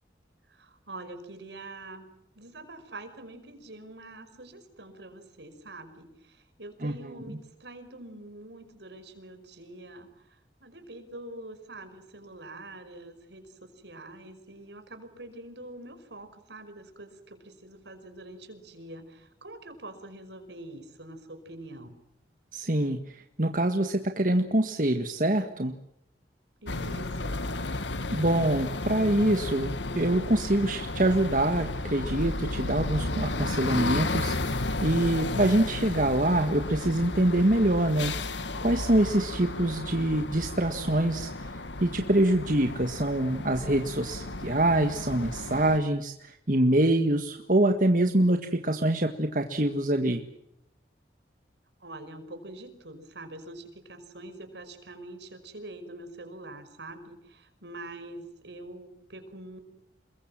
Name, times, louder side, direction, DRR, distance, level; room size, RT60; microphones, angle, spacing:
voice 1, 0.5-2.1 2.3-21.9 26.6-27.4 51.8-59.6, right 2 dB, 75° right, 8 dB, 5.4 m, -45 dB
voice 2, 22.5-23.0 23.4-25.7 28.1-38.3 38.6-41.3 41.8-46.1 46.5-50.2, right 1 dB, 45° right, 5 dB, 1.7 m, -25 dB
sound 1, 26.7-45.8, left 2 dB, 85° left, 1.7 m, -33 dB
28.0 x 23.0 x 7.6 m, 0.80 s
head